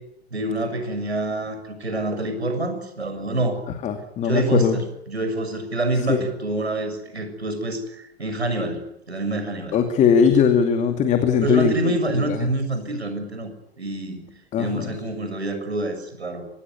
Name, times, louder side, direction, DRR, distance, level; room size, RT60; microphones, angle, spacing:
voice 1, 0.3-3.6 4.2-9.8 11.4-13.5 13.8-14.3 14.6-16.5, right 2 dB, 75° right, 8 dB, 6.8 m, -26 dB
voice 2, 3.8-4.8 6.1-6.3 9.7-12.5 14.5-15.0, left 7 dB, 20° left, 7 dB, 2.5 m, -20 dB
25.0 x 20.0 x 9.8 m, 0.78 s
figure-of-eight pair, 105°, 32 cm